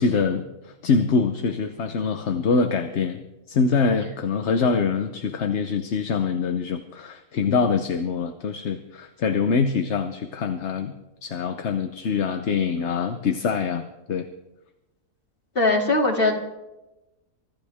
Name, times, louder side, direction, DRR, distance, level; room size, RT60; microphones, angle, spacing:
voice 1, 0.0-10.9 11.2-14.3, left 5 dB, 50° left, 7 dB, 1.1 m, -24 dB
voice 2, 15.5-16.3, left 2 dB, 35° left, 0 dB, 3.0 m, -20 dB
24.5 x 14.0 x 3.6 m, 0.97 s
omnidirectional pair, 1.6 m